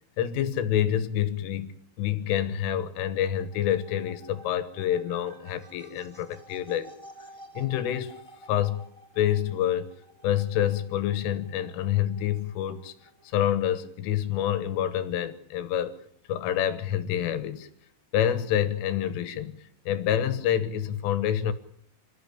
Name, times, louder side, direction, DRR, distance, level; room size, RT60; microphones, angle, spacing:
voice 1, 0.2-6.9 7.6-8.2 8.5-8.8 9.2-9.9 10.2-12.9 13.3-16.0 16.3-17.7 18.1-21.5, left 10 dB, 80° left, 3.9 m, -27 dB
sound 1, 2.6-13.9, right 1 dB, 15° left, 1.0 m, -52 dB
27.0 x 14.5 x 8.7 m
omnidirectional pair, 5.7 m